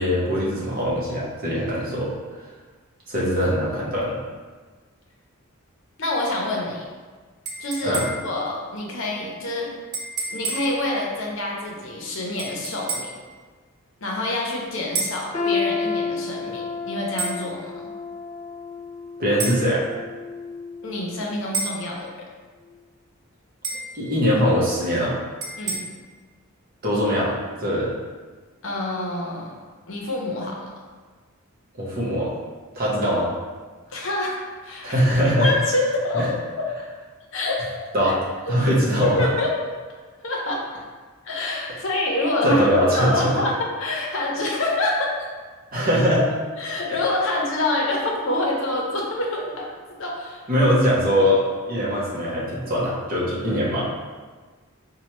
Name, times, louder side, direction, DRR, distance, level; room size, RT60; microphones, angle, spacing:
voice 1, 0.0-2.1 3.1-4.2 7.8-8.0 19.2-19.8 23.9-25.1 26.8-27.4 27.6-27.9 31.8-32.3 32.8-33.3 34.8-35.5 36.1-36.3 37.9-38.2 38.5-39.2 42.4-43.4 45.7-46.2 50.5-53.9, equal, 40° right, -6 dB, 0.8 m, -21 dB
voice 2, 6.0-6.8 7.6-9.7 10.3-13.1 14.0-17.9 20.8-22.2 25.6-25.8 28.6-29.6 29.9-30.7 33.9-34.4 34.6-35.0 35.4-36.7 37.3-38.1 38.5-38.6 39.0-39.5 40.2-40.6 41.2-42.6 42.9-45.3 46.1-46.2 46.6-49.7 50.0-50.7 51.1-51.3, left 2 dB, 60° left, -2 dB, 0.7 m, -26 dB
sound 1, 7.5-8.4 9.9-10.8 12.4-13.2 15.0-15.3 17.2-17.4 19.4-19.6 21.5-21.9 23.6-24.0 25.4-25.8, right 3 dB, 80° right, 0.6 m, -29 dB
sound 2, 15.3-21.3 21.7-21.9 22.7-22.8, left 5 dB, 35° left, 0.3 m, -31 dB
4.3 x 2.2 x 3.0 m, 1.4 s
head